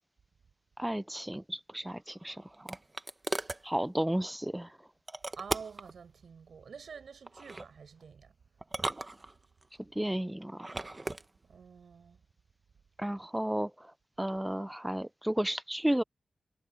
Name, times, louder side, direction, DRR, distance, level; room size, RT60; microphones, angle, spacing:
voice 1, 0.8-2.8 3.6-4.8 9.8-10.7 13.0-16.0, right 1 dB, 10° right, 0.5 m, -33 dB
sound 1, 1.9-3.6 5.1-5.9 7.3-7.7 8.6-9.7 10.5-11.2, right 2 dB, 30° right, 1.2 m, -37 dB
voice 2, 5.4-8.3 11.4-12.2, right 6 dB, 75° right, 7.9 m, -48 dB
cardioid pair, 60°, 0 cm